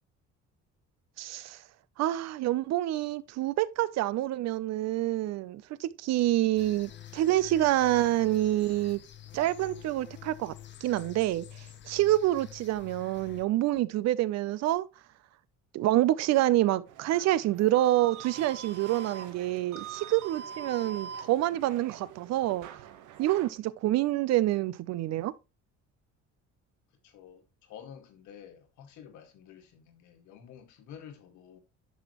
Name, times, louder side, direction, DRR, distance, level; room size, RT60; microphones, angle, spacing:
voice 1, 1.2-1.6 2.0-9.0 9.3-10.5 10.8-11.5 11.9-14.9 15.7-19.8 20.1-22.7 23.2-25.3, right 15 dB, 60° right, 0.6 m, -27 dB
sound 1, 6.6-13.4, left 11 dB, 40° left, 0.9 m, -48 dB
sound 2, 16.9-23.5, right 7 dB, 85° right, 1.2 m, -44 dB
voice 2, 27.0-31.6, left 8 dB, 75° left, 2.0 m, -50 dB
10.5 x 6.2 x 3.1 m
cardioid pair, 170°, 30 cm